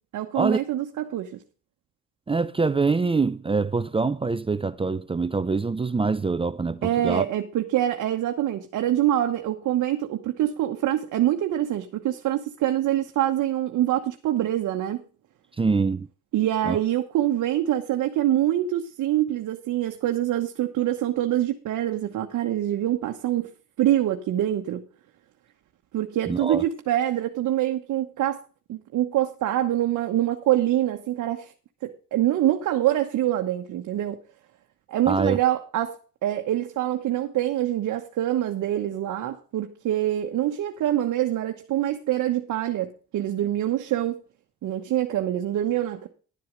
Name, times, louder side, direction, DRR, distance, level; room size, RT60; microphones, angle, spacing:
voice 1, 0.1-1.4 6.8-15.0 16.3-23.5 23.8-24.8 25.9-28.4 28.7-31.5 31.8-34.2 34.9-36.0 36.2-44.1 44.6-46.1, right 12 dB, 75° right, 1.1 m, -25 dB
voice 2, 2.3-7.2 15.6-16.1 16.7-16.8 26.3-26.6 35.1-35.4, right 4 dB, 20° right, 0.6 m, -24 dB
11.0 x 7.7 x 5.0 m
cardioid pair, 90°, 30 cm